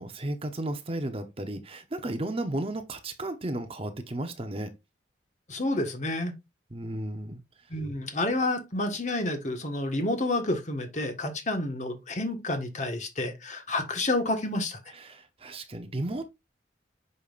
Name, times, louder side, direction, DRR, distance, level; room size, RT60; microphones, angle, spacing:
voice 1, 0.0-4.7 6.7-7.4 15.0-16.2, right 1 dB, 30° right, 0.8 m, -34 dB
voice 2, 5.5-6.3 7.7-14.8, left 2 dB, 40° left, 1.5 m, -29 dB
8.4 x 5.5 x 2.5 m
head